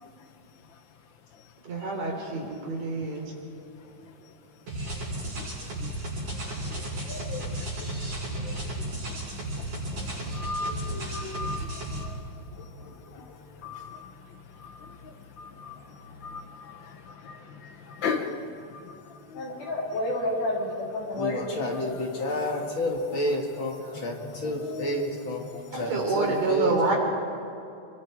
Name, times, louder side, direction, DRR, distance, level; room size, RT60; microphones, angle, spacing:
voice 1, 1.6-3.2 25.7-27.0, right 3 dB, 55° right, 0 dB, 4.9 m, -27 dB
sound 1, 4.7-12.0, right 1 dB, 70° right, 8.7 m, -34 dB
voice 2, 10.4-11.6 13.6-13.8 16.3-16.4 18.0-18.3, left 4 dB, 90° left, 6 dB, 1.0 m, -31 dB
voice 3, 19.3-21.7 22.5-22.8, left 1 dB, 70° left, -2 dB, 5.2 m, -30 dB
voice 4, 21.1-25.5 25.7-26.9, left 1 dB, 40° left, 1 dB, 2.5 m, -30 dB
28.5 x 24.0 x 4.8 m, 2.7 s
omnidirectional pair, 3.7 m